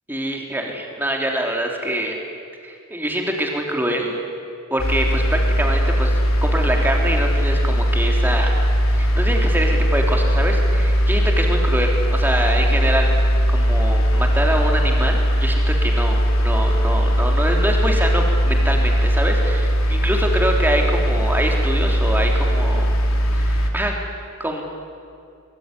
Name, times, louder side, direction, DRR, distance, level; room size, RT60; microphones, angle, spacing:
voice 1, 0.1-2.2 2.6-4.1 4.7-8.6 8.9-13.1 13.5-22.9 23.3-24.0 24.4-24.6, right 1 dB, 10° right, 1 dB, 3.6 m, -24 dB
sound 1, 4.8-23.7, equal, 80° left, 3.1 m, -19 dB
24.0 x 22.5 x 9.9 m, 2.4 s
head